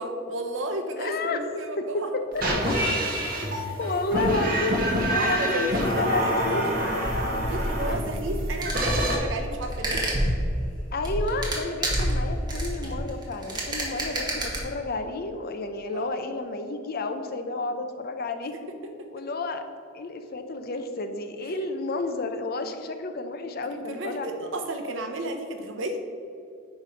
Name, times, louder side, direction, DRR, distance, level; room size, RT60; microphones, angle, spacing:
voice 1, 0.0-2.1 3.5-3.8 5.1-6.7 7.3-10.0 15.9-16.1 23.7-26.0, right 1 dB, 75° right, 5 dB, 1.0 m, -33 dB
voice 2, 1.0-1.4 1.8-1.9 2.1-2.7 3.4-3.5 3.8-4.8 5.1-6.6 10.9-18.6 19.1-19.6 19.9-24.3, left 2 dB, 55° left, 7 dB, 0.7 m, -31 dB
sound 1, 2.3-9.2, equal, 50° right, 1.7 m, -26 dB
sound 2, 6.4-14.6, right 1 dB, 20° right, 1.6 m, -29 dB
9.4 x 3.3 x 5.8 m, 2.4 s
head